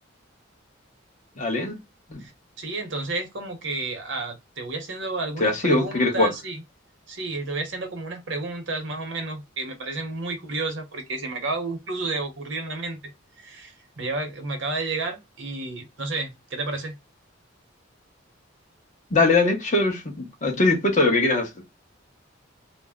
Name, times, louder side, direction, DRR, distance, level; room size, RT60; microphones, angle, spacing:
voice 1, 1.4-1.8 2.1-2.2 5.4-6.3 19.1-21.5, left 2 dB, 40° left, 0.9 m, -21 dB
voice 2, 2.6-6.6 7.1-13.1 13.4-17.0, right 3 dB, 65° right, 0.8 m, -31 dB
2.5 x 2.1 x 3.5 m
head